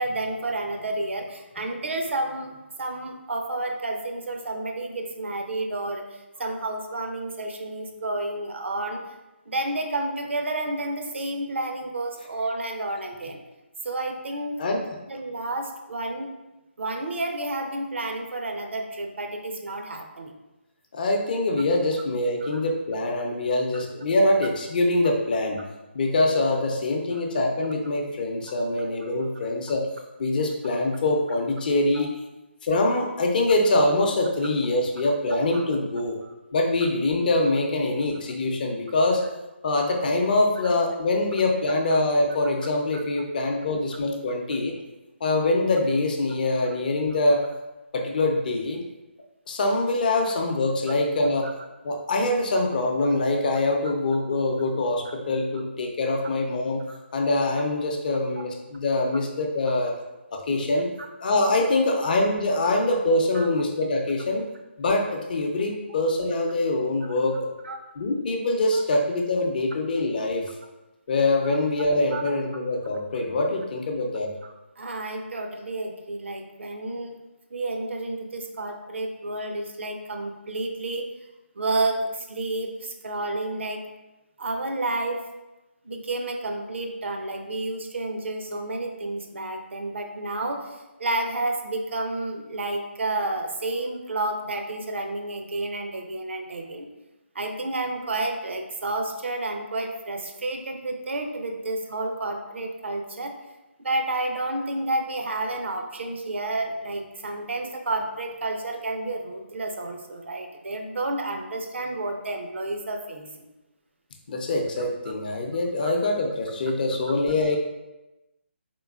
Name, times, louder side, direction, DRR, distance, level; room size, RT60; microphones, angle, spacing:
voice 1, 0.0-9.0 9.5-13.4 13.8-14.6 15.1-16.3 16.8-20.3 22.4-22.6 23.7-23.8 29.0-29.1 31.9-32.1 35.5-35.6 36.2-36.3 42.9-43.0 50.9-51.0 51.4-51.5 56.9-57.0 63.3-63.5 67.6-67.8 68.7-68.8 71.4-71.5 72.1-72.3 74.4-77.2 77.5-81.1 81.5-83.8 84.4-85.2 85.8-96.9 97.3-103.4 103.8-113.3 115.8-115.9, right 2 dB, 70° right, 4 dB, 0.5 m, -30 dB
voice 2, 20.9-25.6 25.9-29.8 30.2-32.1 32.6-36.2 36.5-39.2 39.6-44.7 45.2-47.4 47.9-48.8 49.5-51.5 51.8-56.8 57.1-59.9 60.3-60.9 61.2-64.4 64.8-67.4 68.0-70.4 71.1-74.3 114.3-117.6, left 2 dB, 45° left, 2 dB, 0.6 m, -24 dB
3.7 x 3.5 x 2.3 m, 1.0 s
figure-of-eight pair, 150°, 7 cm